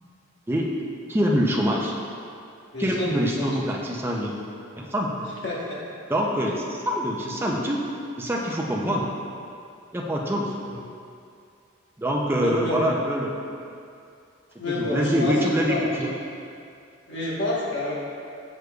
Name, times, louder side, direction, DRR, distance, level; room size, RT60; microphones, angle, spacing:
voice 1, 1.1-1.9 2.8-4.3 4.8-5.1 6.1-7.8 8.2-9.1 9.9-10.5 12.0-13.3 14.7-16.1, equal, 10° right, -2 dB, 0.4 m, -25 dB
voice 2, 2.7-3.5 5.4-5.8 10.6-10.8 12.4-12.9 14.6-15.8 17.1-17.9, left 2 dB, 60° left, -6 dB, 1.2 m, -28 dB
6.6 x 6.3 x 2.3 m, 2.5 s
head